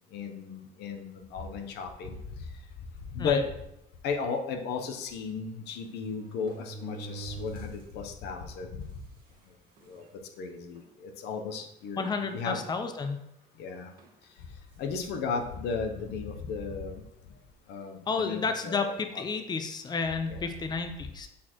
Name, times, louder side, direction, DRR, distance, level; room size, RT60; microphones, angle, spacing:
voice 1, 0.1-2.2 3.1-3.4 4.0-8.8 9.9-10.0 10.4-12.6 13.6-13.9 14.8-17.0 17.7-19.2 20.2-20.5, left 5 dB, 80° left, 5 dB, 0.8 m, -35 dB
sound 1, 2.1-2.3 3.1-3.2 3.5-3.6 4.9-5.0 5.7-7.9 8.4-8.5 9.3-9.4 9.8-10.1 10.7-10.9 12.2-13.0 14.0-14.2, right 4 dB, 65° right, 1.5 m, -45 dB
voice 2, 12.0-13.2 18.1-21.3, left 4 dB, 25° left, 7 dB, 0.6 m, -31 dB
8.4 x 4.2 x 3.0 m, 0.82 s
cardioid pair, 110°, 17 cm